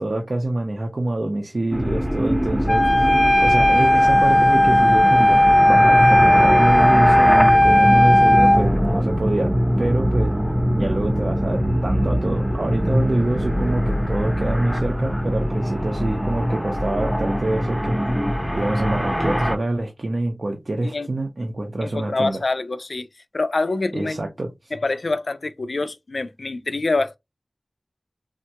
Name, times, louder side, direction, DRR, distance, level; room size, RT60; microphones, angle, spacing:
voice 1, 0.0-2.9 3.4-9.5 9.8-10.3 10.8-18.0 18.5-22.4 23.9-24.7, right 2 dB, 70° right, 0.6 m, -26 dB
sound 1, 1.7-19.6, equal, 5° right, 0.6 m, -22 dB
Wind instrument woodwind instrument, 2.7-8.6, left 1 dB, 35° left, 0.5 m, -15 dB
voice 2, 21.8-23.1 23.3-24.2 24.7-27.2, left 3 dB, 85° left, 0.3 m, -25 dB
3.5 x 2.2 x 2.8 m
wide cardioid pair, 60°, 0 cm